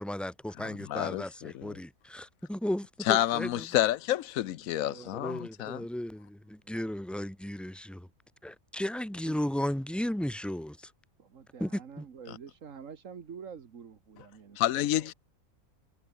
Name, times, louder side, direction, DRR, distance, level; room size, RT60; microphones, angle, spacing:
voice 1, 0.0-3.7 5.0-8.1 8.4-10.8 11.6-12.0, left 1 dB, ahead, 0.6 m, -35 dB
voice 2, 0.6-1.8 3.1-5.9 14.6-15.1, left 13 dB, 75° left, 1.1 m, -29 dB
voice 3, 4.6-5.2 9.2-9.4 11.2-15.1, right 6 dB, 65° right, 1.8 m, -48 dB
omnidirectional pair, 1.5 m